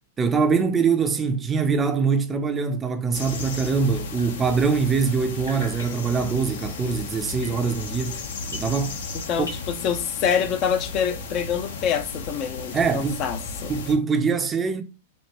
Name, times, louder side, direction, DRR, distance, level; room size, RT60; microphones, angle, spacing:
voice 1, 0.2-8.2 8.5-9.0 12.7-13.2 13.7-14.8, right 5 dB, 20° right, 0.5 m, -23 dB
sound 1, 3.1-13.9, left 3 dB, 65° left, 1.0 m, -34 dB
Drip, 4.0-5.1 5.4-9.1 9.4-10.4, left 1 dB, 80° left, 1.5 m, -44 dB
voice 2, 9.3-13.7, left 8 dB, 40° left, 0.6 m, -26 dB
4.4 x 2.8 x 2.9 m
figure-of-eight pair, 100°, 0 cm